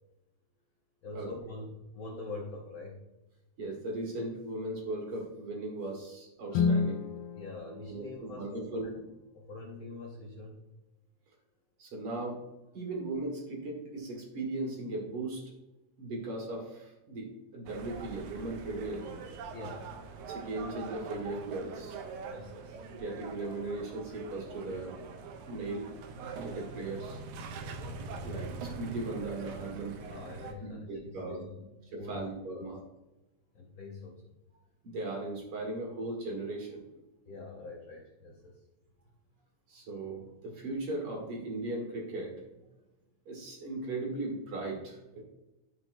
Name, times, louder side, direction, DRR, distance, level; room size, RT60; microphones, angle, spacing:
voice 1, 1.0-3.0 7.3-8.9 9.3-10.7 19.5-20.0 22.3-22.8 27.6-27.8 30.0-30.9 31.2-31.7 32.0-32.6 33.5-34.3 37.3-38.6, left 3 dB, 65° left, -2 dB, 1.3 m, -44 dB
voice 2, 3.6-7.0 7.9-8.9 11.8-12.4 12.7-15.5 16.0-19.1 20.3-22.0 22.9-25.0 25.5-25.9 26.4-27.2 28.2-29.9 30.6-31.4 31.9-32.8 34.8-36.8 39.7-42.4 43.3-45.2, right 2 dB, 50° right, -1 dB, 2.6 m, -38 dB
Guitar, 6.5-9.1, left 5 dB, 85° left, 2.0 m, -32 dB
sound 1, 17.7-30.5, right 4 dB, 80° right, 2.1 m, -43 dB
12.0 x 6.0 x 2.7 m, 1.0 s
omnidirectional pair, 3.4 m